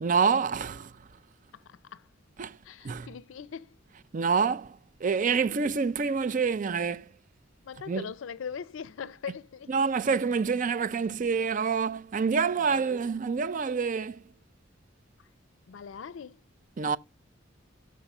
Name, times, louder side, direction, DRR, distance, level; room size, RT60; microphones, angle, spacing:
voice 1, 0.0-0.9 2.4-2.6 2.8-3.1 4.1-7.1 7.9-8.0 9.7-14.2 16.8-17.0, right 5 dB, 40° right, 0.4 m, -27 dB
voice 2, 1.5-2.1 2.6-3.8 7.6-9.7 12.6-12.9 15.2-15.3 15.7-16.4, left 6 dB, 90° left, 0.4 m, -41 dB
6.2 x 5.4 x 5.8 m
head